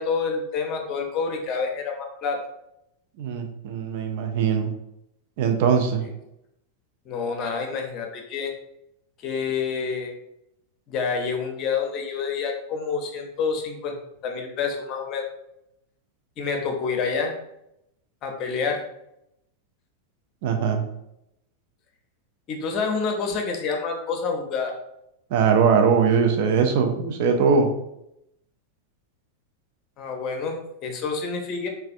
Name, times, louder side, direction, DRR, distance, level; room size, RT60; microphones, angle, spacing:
voice 1, 0.0-2.4 7.1-8.5 9.2-10.1 10.9-13.9 14.2-15.3 16.4-17.3 18.2-18.9 22.5-24.7 30.0-31.7, left 5 dB, 35° left, 3 dB, 0.6 m, -28 dB
voice 2, 3.2-4.7 5.4-6.0 20.4-20.9 25.3-27.7, right 6 dB, 50° right, 5 dB, 0.4 m, -21 dB
3.2 x 2.2 x 2.4 m, 0.82 s
figure-of-eight pair, 90°, 0 cm